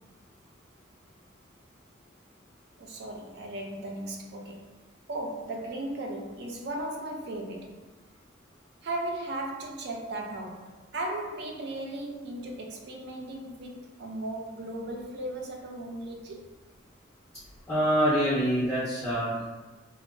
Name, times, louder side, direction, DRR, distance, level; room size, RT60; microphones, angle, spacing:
voice 1, 2.8-4.7 5.1-7.8 8.8-16.4, right 1 dB, 55° right, 0.4 m, -36 dB
voice 2, 17.7-19.5, equal, 10° left, 0.5 m, -25 dB
2.8 x 2.0 x 2.5 m
head